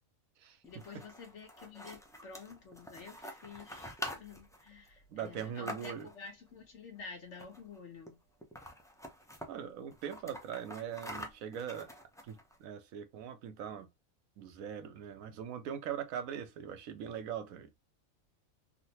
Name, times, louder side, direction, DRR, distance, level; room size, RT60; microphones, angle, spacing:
voice 1, 0.6-8.2, left 5 dB, 60° left, 1.3 m, -50 dB
sound 1, 0.6-6.3 7.3-7.8 8.1-8.2 8.4-9.5 9.9-12.6, equal, 5° left, 0.3 m, -46 dB
voice 2, 5.1-6.1 9.5-11.9 12.2-13.9 14.4-17.7, right 8 dB, 80° right, 1.1 m, -41 dB
3.7 x 2.1 x 2.8 m
omnidirectional pair, 1.4 m